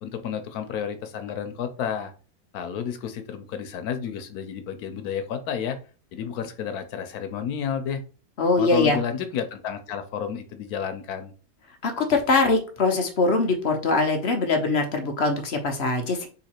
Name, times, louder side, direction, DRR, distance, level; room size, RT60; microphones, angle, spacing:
voice 1, 0.0-2.1 2.5-5.8 6.1-8.0 8.6-11.3, left 8 dB, 90° left, 8 dB, 1.2 m, -31 dB
voice 2, 8.4-9.0 11.8-16.3, left 3 dB, 50° left, 4 dB, 1.0 m, -22 dB
3.9 x 2.9 x 4.4 m, 0.36 s
omnidirectional pair, 1.5 m